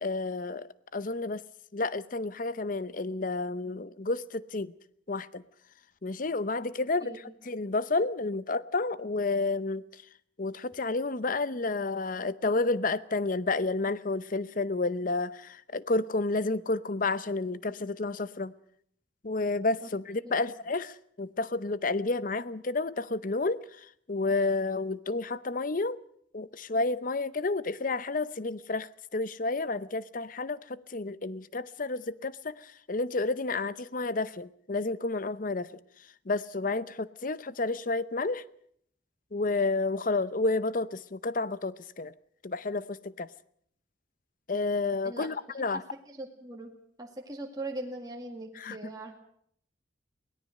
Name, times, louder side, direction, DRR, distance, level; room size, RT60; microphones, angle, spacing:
voice 1, 0.0-1.4 1.7-4.7 5.1-5.4 6.0-10.0 10.4-18.5 19.2-26.0 26.3-35.8 36.3-38.4 39.3-42.1 42.4-43.3 44.5-45.8 48.5-48.9, left 3 dB, 45° left, 0.7 m, -31 dB
voice 2, 46.1-46.7 47.0-49.2, right 2 dB, 20° right, 2.0 m, -40 dB
23.0 x 17.5 x 6.5 m
head